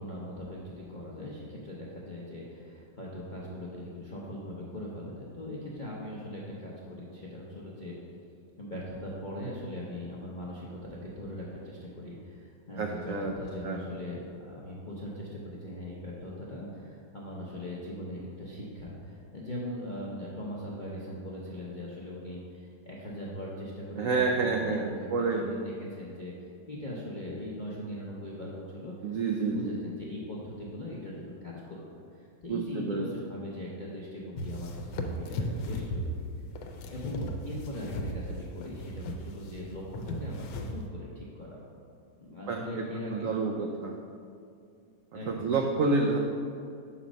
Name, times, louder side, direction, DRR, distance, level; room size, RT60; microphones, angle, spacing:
voice 1, 0.0-7.9 8.6-25.1 25.3-36.2 36.9-41.6 42.2-43.3 45.1-45.5, left 1 dB, 55° left, -6 dB, 0.5 m, -40 dB
voice 2, 12.8-13.3 13.6-13.8 24.0-25.5 29.0-29.8 32.5-33.0 42.5-42.8 43.1-44.0 45.3-46.2, right 3 dB, 80° right, 1 dB, 0.7 m, -29 dB
sound 1, 34.4-40.9, equal, 85° left, 1.3 m, -36 dB
5.2 x 4.2 x 6.0 m, 2.3 s
omnidirectional pair, 1.9 m